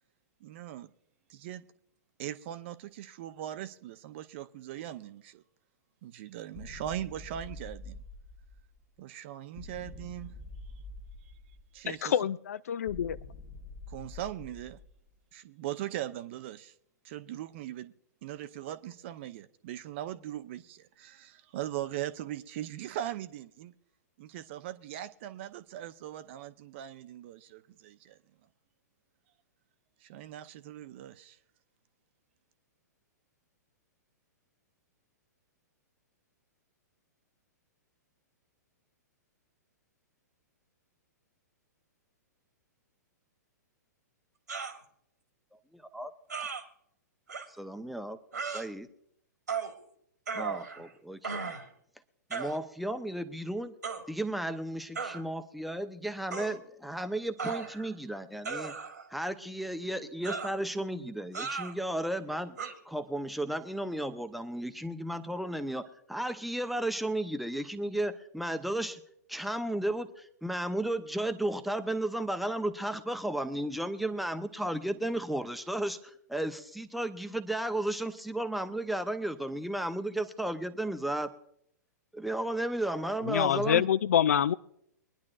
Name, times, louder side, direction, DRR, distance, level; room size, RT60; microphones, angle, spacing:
voice 1, 0.4-0.9 1.3-1.6 2.2-5.4 6.0-8.0 9.0-10.3 11.7-12.2 13.9-14.8 15.3-16.7 17.0-17.9 18.2-23.7 24.2-28.2 30.0-31.4, right 12 dB, 40° right, 12 dB, 0.7 m, -40 dB
sound 1, 6.5-8.8 9.6-11.9 12.9-15.1, left 2 dB, 35° left, 1.3 m, -46 dB
voice 2, 11.8-13.2 83.3-84.5, left 9 dB, 55° left, 17 dB, 0.4 m, -26 dB
sound 2, 44.5-44.8 46.3-46.6 47.3-47.5 48.3-48.7 49.5-49.7 50.3-50.9 51.2-51.7 52.3-52.6 53.8-54.0 55.0-55.2 56.3-56.6 57.4-57.9 58.4-59.1 60.2-60.6 61.3-61.7 62.6-62.7, right 5 dB, 70° right, 1.7 m, -36 dB
voice 3, 47.6-48.2 48.5-48.9 50.3-51.5 52.3-53.7 54.1-58.7 59.1-62.6 62.9-69.0 69.3-81.3 82.1-83.8, right 1 dB, ahead, 9 dB, 0.7 m, -34 dB
23.0 x 10.5 x 2.5 m, 0.72 s
figure-of-eight pair, 110°, 10 cm